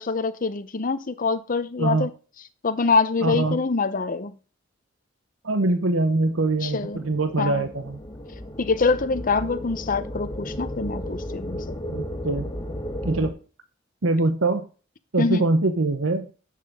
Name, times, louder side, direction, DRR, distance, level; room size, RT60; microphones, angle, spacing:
voice 1, 0.0-2.1 2.6-4.3 6.6-7.0 7.4-7.7 8.6-11.6 15.2-15.4, left 4 dB, 45° left, 0.7 m, -24 dB
voice 2, 3.2-3.6 5.4-8.0 11.9-12.5 13.0-13.3 14.0-14.6 15.1-16.3, right 2 dB, 80° right, 1.0 m, -23 dB
sound 1, 6.3-13.3, equal, 20° left, 1.5 m, -34 dB
10.5 x 7.4 x 3.6 m
head